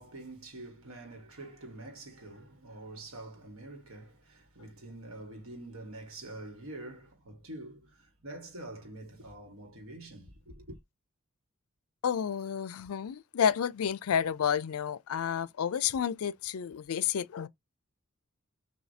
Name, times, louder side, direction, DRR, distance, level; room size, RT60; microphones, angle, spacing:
voice 1, 0.0-10.8, right 2 dB, 75° right, 1.6 m, -46 dB
voice 2, 12.0-17.5, left 8 dB, 85° left, 0.4 m, -30 dB
6.4 x 2.7 x 2.7 m
head